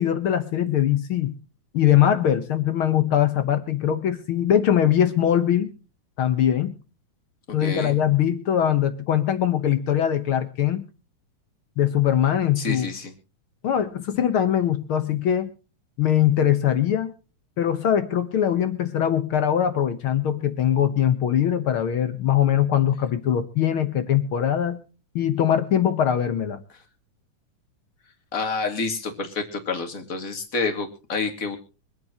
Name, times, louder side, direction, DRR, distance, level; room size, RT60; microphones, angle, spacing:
voice 1, 0.0-1.3 1.7-5.7 6.2-6.7 7.5-10.8 11.8-12.9 13.6-15.5 16.0-17.1 17.6-24.8 25.1-26.6, left 10 dB, 65° left, 10 dB, 1.3 m, -22 dB
voice 2, 7.6-8.0 12.6-13.1 28.3-31.6, left 4 dB, 30° left, 5 dB, 2.2 m, -28 dB
25.0 x 9.3 x 2.9 m, 0.36 s
omnidirectional pair, 3.7 m